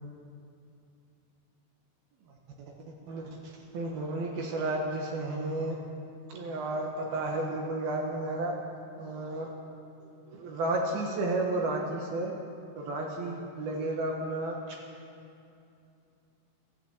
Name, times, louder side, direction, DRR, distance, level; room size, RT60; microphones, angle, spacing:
voice 1, 3.1-5.8 6.3-8.5 9.0-9.5 10.3-12.3 12.8-14.6, right 2 dB, 70° right, 0 dB, 2.5 m, -32 dB
13.5 x 12.5 x 8.2 m, 2.6 s
omnidirectional pair, 6.0 m